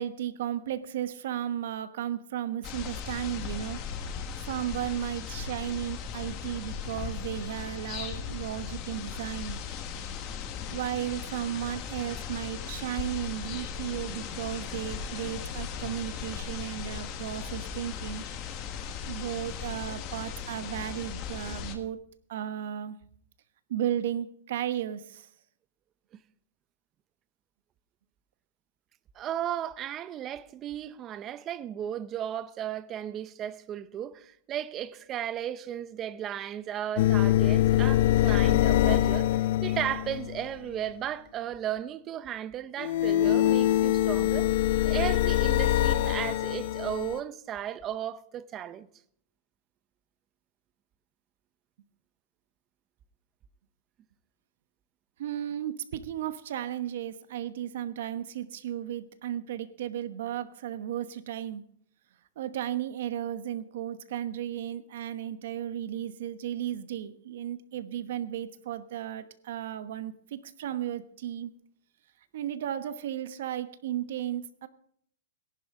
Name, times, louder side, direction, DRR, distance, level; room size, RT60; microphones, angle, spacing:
voice 1, 0.0-3.8 4.5-9.6 10.7-18.2 19.1-22.0 22.3-23.0 23.7-25.3 55.2-61.6 62.4-71.5 72.3-74.7, right 11 dB, 65° right, 1.1 m, -34 dB
sound 1, 2.6-21.8, left 7 dB, 30° left, 1.5 m, -37 dB
voice 2, 29.2-44.5 44.8-48.9, right 10 dB, 25° right, 0.6 m, -35 dB
sound 2, 37.0-40.5 42.8-47.2, left 13 dB, 55° left, 0.5 m, -24 dB
18.0 x 11.5 x 3.8 m
supercardioid pair, 160°, 0 cm